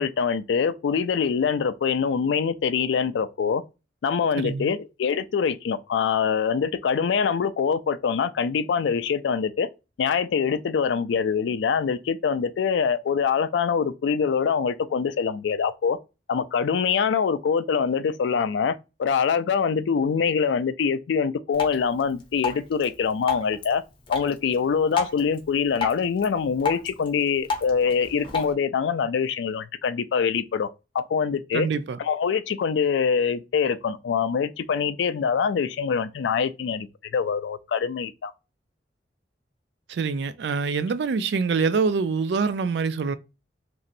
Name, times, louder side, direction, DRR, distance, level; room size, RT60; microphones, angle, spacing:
voice 1, 0.0-3.6 4.0-9.7 10.0-16.0 16.3-23.8 24.1-30.7 30.9-31.7 32.0-38.3, left 6 dB, 85° left, 0.3 m, -24 dB
voice 2, 4.4-4.7 31.5-32.0 39.9-43.2, right 5 dB, 70° right, 0.4 m, -25 dB
Drip, 21.5-28.5, left 4 dB, 30° left, 0.6 m, -33 dB
3.0 x 2.7 x 2.4 m
head